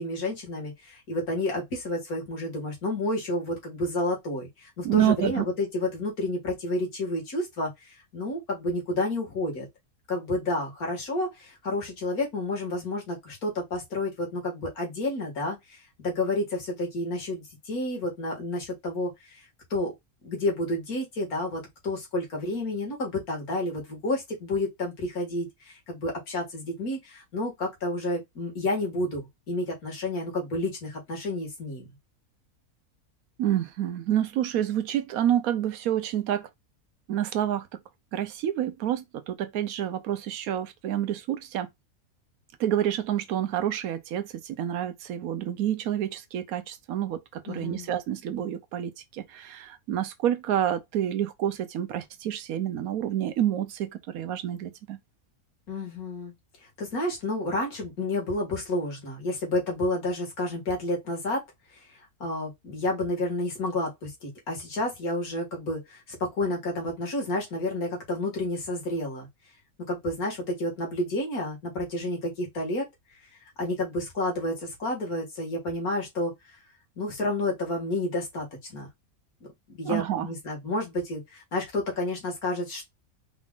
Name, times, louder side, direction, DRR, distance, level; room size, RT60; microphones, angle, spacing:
voice 1, 0.0-9.7 10.1-19.4 19.7-19.9 20.2-31.9 47.5-47.9 55.7-56.3 56.8-61.4 62.2-69.3 69.9-72.9 73.6-76.3 77.0-78.9 79.7-82.9, left 1 dB, 90° left, 2.3 m, -30 dB
voice 2, 4.8-5.5 33.4-36.5 37.1-37.7 38.1-41.7 42.6-55.0 79.8-80.3, right 11 dB, 85° right, 1.1 m, -28 dB
4.9 x 2.4 x 3.6 m
omnidirectional pair, 1.5 m